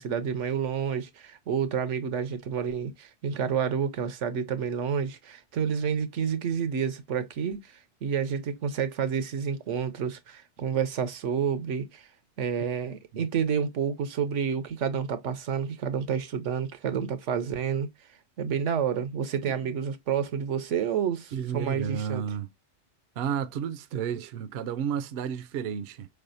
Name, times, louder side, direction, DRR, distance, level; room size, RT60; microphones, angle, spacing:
voice 1, 0.0-7.6 8.0-12.0 12.4-17.9 18.4-22.2, right 7 dB, 85° right, 1.1 m, -29 dB
voice 2, 21.3-22.5 23.2-26.1, right 8 dB, 65° right, 0.7 m, -32 dB
4.7 x 3.3 x 2.5 m
omnidirectional pair, 1.2 m